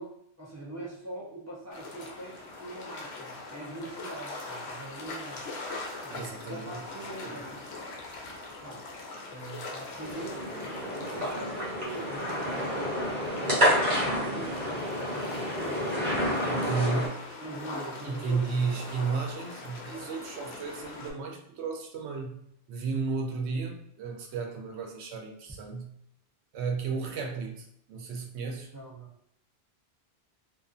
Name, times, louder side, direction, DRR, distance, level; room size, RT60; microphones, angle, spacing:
voice 1, 0.0-5.4 6.0-6.2 6.5-7.6 8.6-8.8 9.3-15.2 15.6-17.1 17.4-18.5 28.7-29.1, right 2 dB, 20° right, -6 dB, 0.4 m, -43 dB
sound 1, 1.7-21.1, left 2 dB, 80° left, 0.9 m, -42 dB
voice 2, 6.1-6.8 7.2-7.4 16.4-17.1 18.0-26.0 26.5-28.7, right 4 dB, 85° right, 2 dB, 0.8 m, -33 dB
sound 2, 10.0-17.1, equal, 45° right, 1.1 m, -29 dB
2.5 x 2.3 x 2.4 m, 0.72 s
omnidirectional pair, 1.1 m